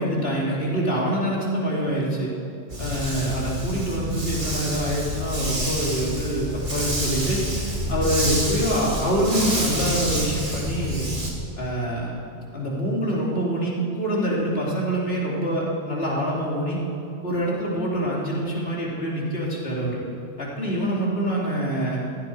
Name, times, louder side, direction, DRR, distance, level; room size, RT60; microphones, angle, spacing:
voice 1, 0.0-2.3 2.8-11.1 11.6-12.1 12.5-16.8 17.2-20.0 20.4-22.0, right 1 dB, 55° left, -4 dB, 3.3 m, -25 dB
Dog, 2.7-11.3, equal, 40° right, 2.6 m, -28 dB
15.5 x 15.0 x 4.7 m, 2.7 s
omnidirectional pair, 1.2 m